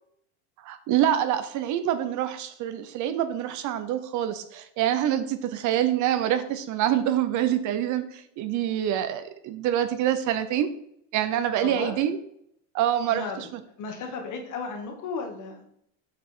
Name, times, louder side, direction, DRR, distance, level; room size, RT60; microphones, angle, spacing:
voice 1, 0.6-10.7 11.1-12.2 12.7-13.5, right 11 dB, 45° right, 10 dB, 0.7 m, -26 dB
voice 2, 11.5-12.0 13.1-13.5 13.8-15.6, left 4 dB, 45° left, 3 dB, 1.8 m, -34 dB
7.5 x 5.4 x 4.5 m, 0.71 s
cardioid pair, 145°, 41 cm